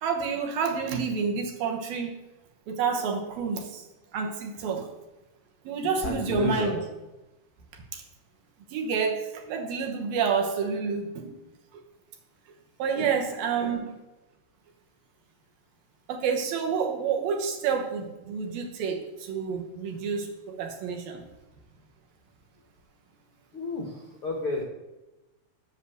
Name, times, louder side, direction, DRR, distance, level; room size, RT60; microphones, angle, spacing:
voice 1, 0.0-2.2 2.7-3.8 4.1-4.9 5.7-6.8 7.9-8.0 8.7-11.3 12.8-13.9 16.1-21.2, right 6 dB, 70° right, 3 dB, 2.7 m, -29 dB
voice 2, 6.0-6.7 12.9-13.0 13.6-13.7 23.5-24.6, left 3 dB, 85° left, 1 dB, 1.2 m, -31 dB
8.1 x 6.9 x 8.0 m, 1.0 s
omnidirectional pair, 4.7 m